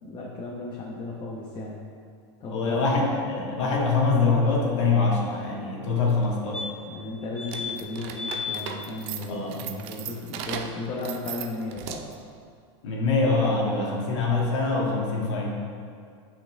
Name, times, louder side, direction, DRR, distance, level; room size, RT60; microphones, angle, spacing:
voice 1, 0.0-1.8 2.4-2.8 6.9-12.0, left 2 dB, 35° left, -3 dB, 1.0 m, -35 dB
voice 2, 2.5-6.6 9.3-9.6 12.8-15.6, left 3 dB, 85° left, -2 dB, 1.9 m, -24 dB
sound 1, 6.2-6.3 6.5-7.0 7.4-7.8 8.2-8.6 11.0-11.1 11.3-11.4, left 6 dB, 5° left, 0.5 m, -33 dB
sound 2, 7.4-12.3, right 9 dB, 50° right, 0.6 m, -37 dB
9.3 x 5.8 x 3.5 m, 2.2 s
supercardioid pair, 145°, 15 cm